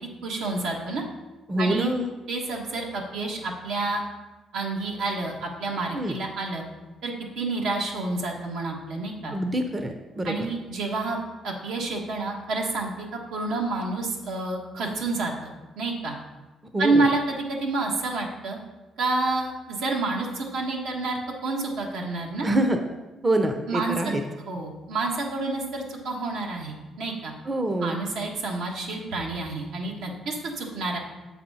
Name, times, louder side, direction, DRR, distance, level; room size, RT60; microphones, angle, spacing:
voice 1, 0.2-1.0 1.6-1.9 2.3-4.0 4.5-6.6 7.0-9.3 10.2-11.2 11.4-16.1 16.8-18.6 19.0-22.5 23.7-24.1 24.5-27.3 27.8-31.0, right 3 dB, 80° right, 0 dB, 1.4 m, -29 dB
voice 2, 1.5-2.1 5.9-6.2 9.3-10.5 16.7-17.1 22.4-22.8 23.2-24.2 27.5-28.0, right 1 dB, 25° right, 5 dB, 0.6 m, -25 dB
7.2 x 4.2 x 5.5 m, 1.1 s
cardioid pair, 90°, 0 cm